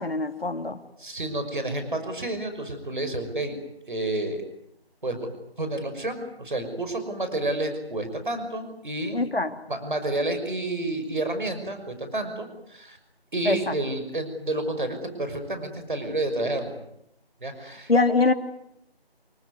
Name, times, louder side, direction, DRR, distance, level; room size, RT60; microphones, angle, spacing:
voice 1, 0.0-0.8 9.1-9.5 13.4-13.7 17.9-18.3, left 3 dB, 65° left, 7 dB, 2.9 m, -23 dB
voice 2, 1.0-3.6 3.9-4.4 5.0-5.2 5.6-9.2 9.7-13.0 13.3-16.8 17.4-17.9, right 2 dB, 50° right, 8 dB, 6.0 m, -30 dB
28.5 x 20.5 x 9.6 m, 0.80 s
figure-of-eight pair, 175°, 32 cm